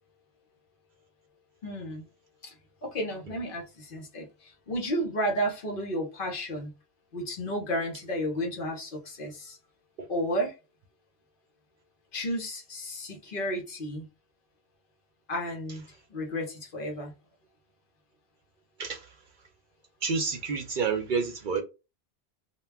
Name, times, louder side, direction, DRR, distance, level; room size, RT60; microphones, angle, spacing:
voice 1, 1.6-2.0 2.4-2.5 2.8-6.7 7.1-9.6 10.1-10.5 12.1-14.1 15.3-15.8 16.1-17.1, equal, 55° left, 0.9 m, -32 dB
voice 2, 20.0-21.6, right 5 dB, 60° right, 0.6 m, -29 dB
2.2 x 2.2 x 3.3 m
omnidirectional pair, 1.1 m